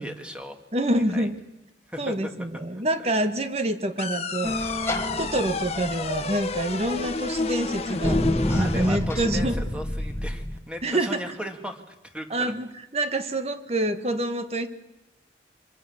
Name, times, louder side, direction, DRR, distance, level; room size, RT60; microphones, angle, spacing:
voice 1, 0.0-0.6 1.1-1.3 1.9-2.3 2.7-2.8 8.4-12.5, equal, 5° right, 5 dB, 2.3 m, -37 dB
voice 2, 0.7-1.4 2.0-4.6 5.2-8.3 8.5-9.6 10.8-11.2 12.3-12.7 12.9-14.7, right 1 dB, 35° right, 9 dB, 1.7 m, -26 dB
sound 1, 4.0-9.0, left 3 dB, 35° left, 1.4 m, -31 dB
sound 2, 4.4-10.6, left 1 dB, 15° left, 1.7 m, -30 dB
26.5 x 25.5 x 7.4 m, 0.98 s
head